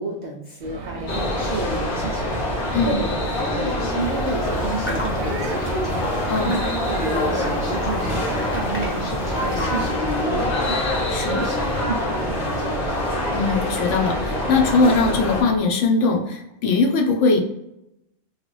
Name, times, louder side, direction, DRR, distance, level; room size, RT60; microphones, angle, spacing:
voice 1, 0.0-2.4 2.9-6.0 6.5-12.7, right 2 dB, 80° right, 0 dB, 0.3 m, -31 dB
sound 1, 0.6-15.6, right 2 dB, 60° right, 0.7 m, -35 dB
sound 2, 1.1-15.4, left 1 dB, 50° left, 0.9 m, -25 dB
sound 3, 4.0-9.9, equal, 15° left, 0.4 m, -34 dB
voice 2, 13.3-17.4, left 4 dB, 75° left, 2 dB, 1.0 m, -20 dB
3.1 x 2.4 x 3.1 m, 0.85 s
omnidirectional pair, 1.3 m